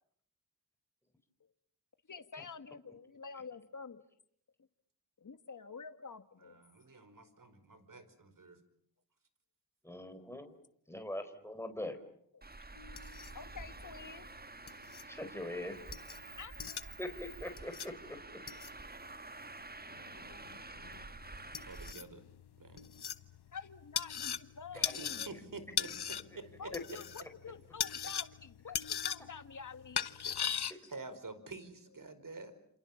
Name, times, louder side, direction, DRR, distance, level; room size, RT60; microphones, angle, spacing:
voice 1, 2.1-4.0 5.2-6.6 12.3-12.4 13.3-14.3 16.4-16.5 16.9-17.0 23.0-23.1 23.5-25.3 26.6-30.0 30.8-30.9, left 5 dB, 50° left, 9 dB, 2.0 m, -48 dB
voice 2, 6.4-8.6 21.7-22.2 22.6-22.9 24.7-25.9 26.4-26.7 30.2-32.5, right 3 dB, 50° right, 12 dB, 5.1 m, -49 dB
voice 3, 9.8-10.5 10.9-12.0 15.1-15.7 17.0-18.2 24.8-25.1, left 1 dB, 5° left, 7 dB, 4.8 m, -42 dB
Traffic noise roadway noise, 12.4-21.9, right 3 dB, 25° right, 1.4 m, -49 dB
sound 1, 12.8-30.7, left 8 dB, 70° left, 1.2 m, -41 dB
28.5 x 28.0 x 7.3 m, 0.69 s
cardioid pair, 45°, 41 cm